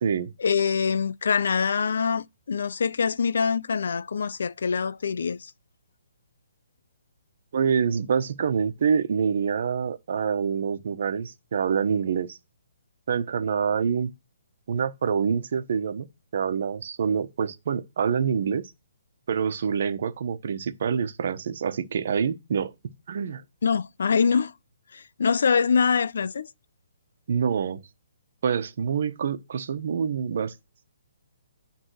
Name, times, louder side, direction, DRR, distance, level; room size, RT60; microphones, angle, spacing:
voice 1, 0.4-5.5 23.6-24.5 24.9-26.5, left 6 dB, 70° left, 0.5 m, -24 dB
voice 2, 7.5-12.4 13.1-14.1 14.7-16.1 16.3-18.6 19.3-22.7 23.1-23.4 27.3-27.8 28.4-30.5, right 6 dB, 55° right, 1.2 m, -26 dB
10.0 x 3.6 x 6.4 m
hypercardioid pair, 165°, 0 cm